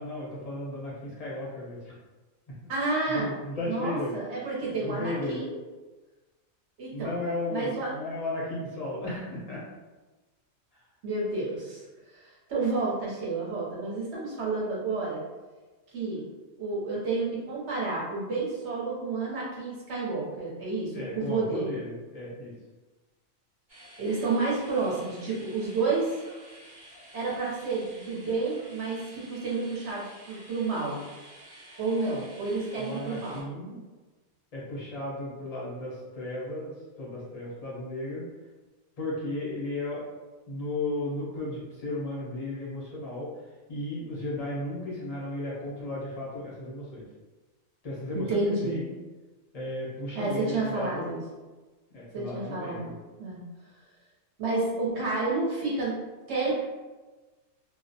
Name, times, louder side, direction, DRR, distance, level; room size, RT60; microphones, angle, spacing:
voice 1, 0.0-2.0 2.6-2.7 3.1-4.1 4.6-5.4 6.9-9.6 10.7-10.8 20.9-22.5 32.8-33.8 34.5-38.2 39.0-40.0 40.5-47.1 47.8-48.9 49.5-51.1 51.9-52.9, left 2 dB, 45° left, -5 dB, 0.5 m, -35 dB
voice 2, 2.7-3.3 3.7-5.6 6.8-7.1 7.5-7.9 11.0-11.8 12.1-15.2 15.9-16.3 16.6-21.8 24.0-26.2 27.1-31.1 31.8-33.4 48.1-48.8 50.1-51.2 52.1-52.9 53.2-53.4 54.4-56.0 56.3-56.6, right 3 dB, 60° right, -5 dB, 0.8 m, -30 dB
sound 1, 23.7-33.4, right 1 dB, 30° right, 0.5 m, -51 dB
2.3 x 2.0 x 2.6 m, 1.2 s
omnidirectional pair, 1.4 m